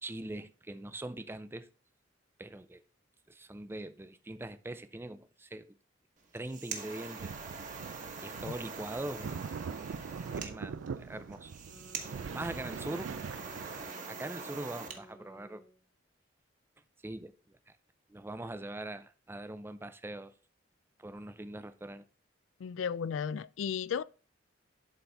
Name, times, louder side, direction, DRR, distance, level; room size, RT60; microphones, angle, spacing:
voice 1, 0.0-1.7 2.4-2.8 3.3-5.7 6.3-7.3 8.2-9.4 10.3-11.5 11.9-13.1 14.1-15.6 17.0-17.8 18.1-20.3 21.0-22.0, right 1 dB, 10° right, 0.5 m, -42 dB
sound 1, 6.2-15.0, right 5 dB, 40° right, 1.1 m, -44 dB
sound 2, 7.2-13.9, right 6 dB, 85° right, 0.4 m, -42 dB
sound 3, 11.6-15.8, equal, 65° left, 1.9 m, -55 dB
voice 2, 22.6-24.0, left 7 dB, 85° left, 0.3 m, -34 dB
11.0 x 4.0 x 3.4 m
head